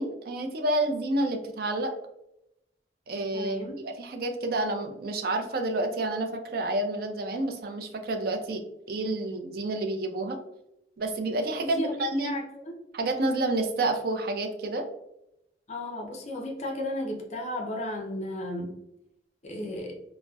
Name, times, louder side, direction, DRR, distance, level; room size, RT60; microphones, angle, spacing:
voice 1, 0.0-1.9 3.1-10.4 11.0-12.4 12.9-14.9, right 2 dB, 55° right, 5 dB, 0.4 m, -29 dB
voice 2, 3.3-3.8 11.6-12.8 15.7-18.7 19.4-20.0, left 1 dB, 40° left, 1 dB, 0.5 m, -34 dB
3.9 x 2.1 x 2.2 m, 0.84 s
head